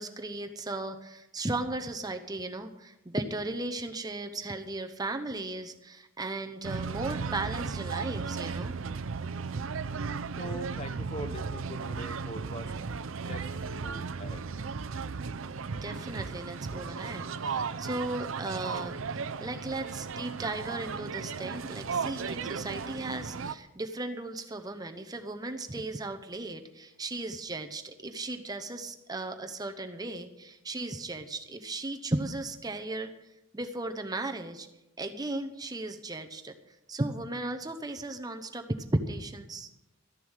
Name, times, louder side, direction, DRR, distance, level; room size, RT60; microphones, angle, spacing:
voice 1, 0.0-8.8 15.7-18.9 19.4-33.1 33.5-34.7 35.0-38.7 38.9-39.7, right 2 dB, 20° right, 6 dB, 0.8 m, -36 dB
sound 1, 6.6-23.5, right 5 dB, 70° right, 0.6 m, -35 dB
voice 2, 10.4-12.7 13.2-13.5 13.8-14.5, equal, 30° left, 9 dB, 0.9 m, -42 dB
13.5 x 10.5 x 6.4 m, 0.93 s
head